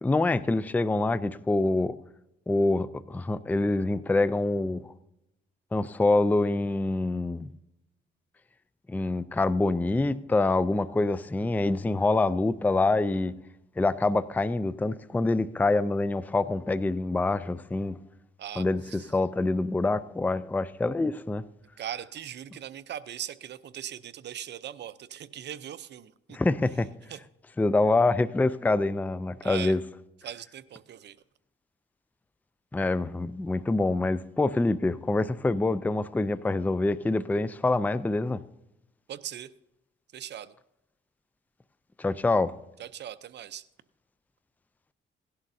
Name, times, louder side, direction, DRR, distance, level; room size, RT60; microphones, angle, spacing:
voice 1, 0.0-1.9 2.5-4.9 5.7-7.5 8.9-13.3 13.8-18.0 18.6-21.4 26.3-26.9 27.6-29.8 32.7-38.4 42.0-42.5, left 2 dB, 10° left, 0.4 m, -26 dB
voice 2, 18.4-19.1 21.8-26.4 27.1-27.2 29.4-29.8 30.2-31.2 39.1-39.5 40.1-40.5 42.8-43.6, right 10 dB, 60° right, 0.7 m, -40 dB
17.5 x 11.5 x 2.7 m
cardioid pair, 90°, 20 cm